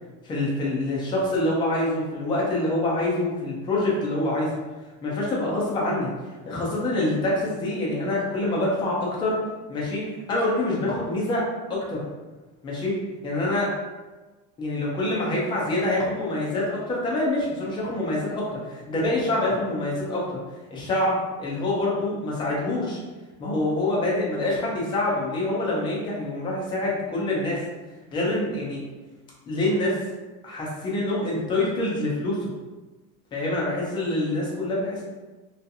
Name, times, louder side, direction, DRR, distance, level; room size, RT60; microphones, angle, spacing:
voice 1, 0.2-4.5 5.0-6.1 6.4-9.4 9.7-11.4 11.7-12.0 12.6-13.7 14.6-20.4 20.7-23.0 23.4-27.6 28.1-28.8 29.5-30.0 30.4-32.5 33.3-35.0, left 1 dB, 10° left, -5 dB, 0.3 m, -26 dB
2.5 x 2.3 x 2.6 m, 1.2 s
supercardioid pair, 130°, 45 cm